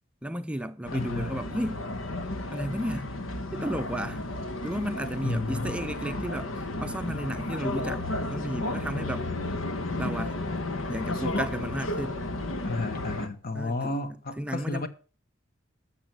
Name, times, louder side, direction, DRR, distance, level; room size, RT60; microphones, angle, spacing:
voice 1, 0.2-1.8 2.5-3.1 3.5-4.2 4.6-8.0 8.3-9.3 10.0-10.4 10.9-12.3 13.5-14.0 14.4-14.9, equal, 5° right, 0.5 m, -33 dB
sound 1, 0.8-13.3, left 2 dB, 90° left, 1.4 m, -33 dB
voice 2, 0.9-1.4 5.2-5.8 12.6-14.9, left 2 dB, 50° left, 1.4 m, -32 dB
13.5 x 6.8 x 6.2 m
head